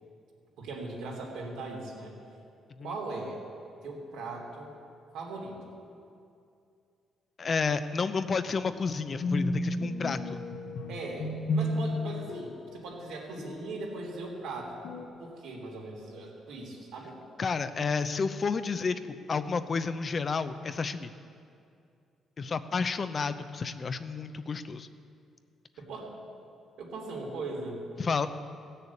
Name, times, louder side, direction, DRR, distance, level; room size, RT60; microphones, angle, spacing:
voice 1, 0.6-2.1 2.8-3.4 3.8-4.7 5.1-5.6 10.9-14.8 15.2-17.2 25.8-26.1 26.8-27.8, right 3 dB, 90° right, -2 dB, 3.2 m, -39 dB
voice 2, 7.4-10.4 17.4-19.0 19.3-21.1 22.4-24.9 28.0-28.3, left 5 dB, 40° left, 11 dB, 0.7 m, -30 dB
sound 1, 8.3-14.4 14.8-15.1, left 1 dB, 70° left, 1.6 m, -34 dB
16.0 x 6.8 x 8.4 m, 2.5 s
cardioid pair, 90°, 0 cm